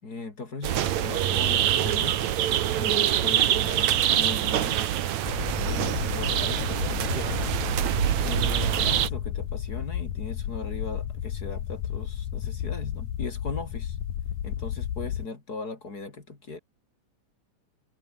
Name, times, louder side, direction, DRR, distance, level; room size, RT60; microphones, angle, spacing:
voice 1, 0.0-2.2 2.8-4.8 5.6-7.6 8.2-14.0 14.4-16.6, left 3 dB, 30° left, 3.9 m, -38 dB
sound 1, 0.6-9.1, right 11 dB, 70° right, 2.6 m, -25 dB
sound 2, 5.3-15.3, left 10 dB, 90° left, 3.2 m, -32 dB
omnidirectional pair, 3.4 m